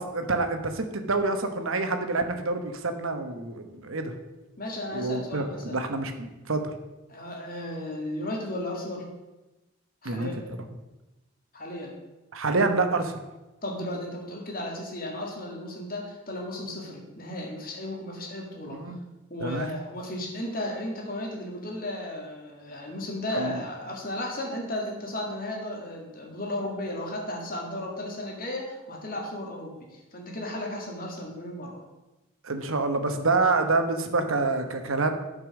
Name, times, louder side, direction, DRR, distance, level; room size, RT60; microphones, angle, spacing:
voice 1, 0.0-4.1 4.9-6.7 10.0-10.3 12.3-13.2 18.7-19.0 19.4-19.7 23.3-23.6 32.4-35.1, right 3 dB, 75° right, 7 dB, 1.1 m, -27 dB
voice 2, 4.6-5.8 7.1-9.1 10.0-10.4 11.5-11.9 13.6-19.0 19.3-31.8, left 1 dB, 40° left, 0 dB, 2.0 m, -35 dB
9.2 x 5.4 x 6.3 m, 1.1 s
head